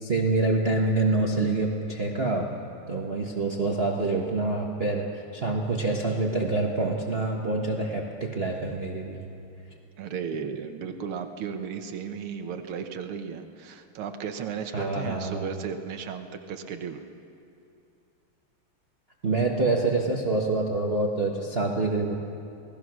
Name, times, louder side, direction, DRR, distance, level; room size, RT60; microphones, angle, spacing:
voice 1, 0.0-2.5 2.9-9.2 14.7-15.5 19.2-22.2, right 3 dB, 30° right, -1 dB, 1.5 m, -26 dB
voice 2, 10.0-17.0, right 7 dB, 85° right, 6 dB, 2.0 m, -35 dB
28.5 x 18.0 x 6.2 m, 2.7 s
omnidirectional pair, 2.4 m